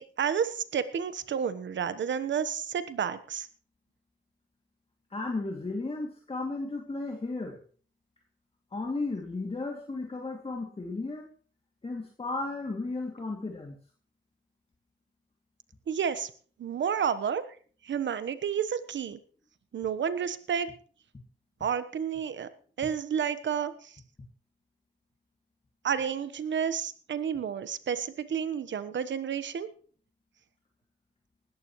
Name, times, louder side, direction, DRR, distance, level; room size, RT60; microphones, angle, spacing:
voice 1, 0.0-3.5 15.9-16.3 16.6-17.4 17.8-19.2 19.7-20.7 21.6-22.5 22.8-23.9 25.8-29.7, right 7 dB, 70° right, 13 dB, 1.2 m, -30 dB
voice 2, 5.1-7.6 8.7-11.3 11.8-13.8, left 3 dB, 30° left, 1 dB, 2.6 m, -34 dB
19.0 x 14.0 x 3.2 m, 0.43 s
cardioid pair, 75°, 19 cm